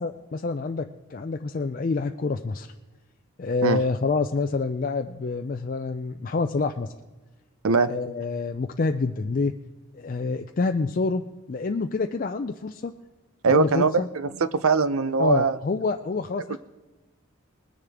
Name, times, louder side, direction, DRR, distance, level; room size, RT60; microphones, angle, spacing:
voice 1, 0.0-2.7 3.4-6.9 7.9-9.5 9.9-12.9 13.5-14.1 15.2-16.6, left 3 dB, 40° left, 6 dB, 0.4 m, -27 dB
voice 2, 13.4-15.6, right 4 dB, 80° right, 14 dB, 0.6 m, -21 dB
20.5 x 10.0 x 3.5 m, 1.2 s
head